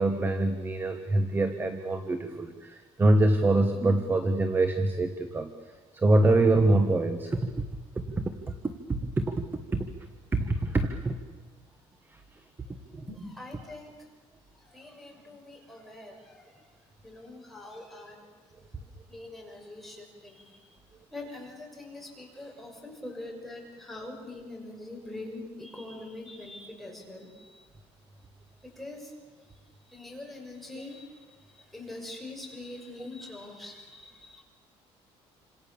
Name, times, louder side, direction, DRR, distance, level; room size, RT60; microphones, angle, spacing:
voice 1, 0.0-5.5 5.9-7.4 7.9-8.3 8.6-9.5 9.7-9.9 10.3-11.2 12.9-13.1, right 2 dB, 20° right, 8 dB, 1.5 m, -25 dB
voice 2, 13.1-14.0 14.5-16.7 17.0-18.3 19.1-20.7 21.1-27.7 28.6-29.1 29.5-34.4, left 2 dB, ahead, -1 dB, 6.3 m, -44 dB
28.0 x 26.5 x 7.2 m, 1.3 s
cardioid pair, 135°, 11 cm